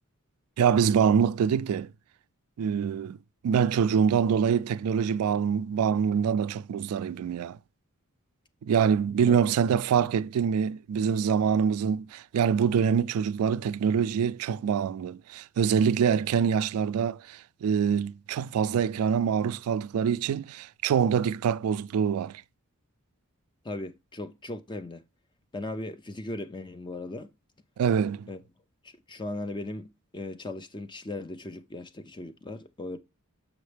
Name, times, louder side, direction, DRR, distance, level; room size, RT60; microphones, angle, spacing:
voice 1, 0.6-1.9 2.6-3.2 3.4-7.6 8.6-22.4 27.8-28.3, right 7 dB, 80° right, 0.3 m, -25 dB
voice 2, 23.6-25.0 25.5-27.3 28.3-28.4 28.8-33.0, left 2 dB, 20° left, 0.6 m, -38 dB
7.1 x 5.5 x 3.3 m
head